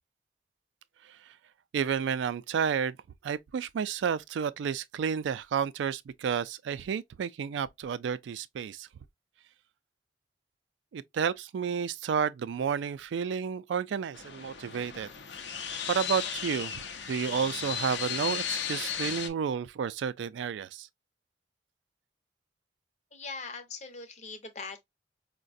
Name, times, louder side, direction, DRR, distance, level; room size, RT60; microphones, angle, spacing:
voice 1, 1.7-3.0 3.2-8.9 10.9-15.1 15.9-16.8 17.1-20.9, right 7 dB, 90° right, 0.3 m, -31 dB
sound 1, 14.1-19.3, left 8 dB, 85° left, 0.6 m, -35 dB
voice 2, 23.1-24.8, left 4 dB, 40° left, 0.7 m, -41 dB
4.7 x 2.2 x 2.5 m
head